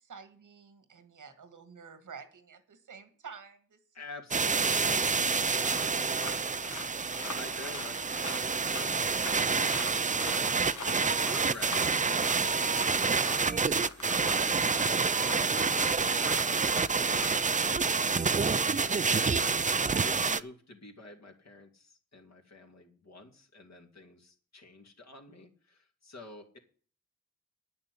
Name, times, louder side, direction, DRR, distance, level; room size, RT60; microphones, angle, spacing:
voice 1, 0.0-4.0 5.5-5.6, right 6 dB, 85° right, 9 dB, 1.9 m, -50 dB
voice 2, 3.9-5.9 6.6-6.8 7.1-10.8 15.1-16.3 16.9-17.9 18.7-26.6, left 2 dB, 60° left, 3 dB, 2.8 m, -49 dB
sound 1, 4.3-20.4, right 4 dB, 25° right, 0.5 m, -28 dB
sound 2, 5.6-17.3, left 4 dB, 75° left, 2.0 m, -44 dB
9.8 x 6.8 x 8.4 m, 0.43 s
wide cardioid pair, 75°, 30 cm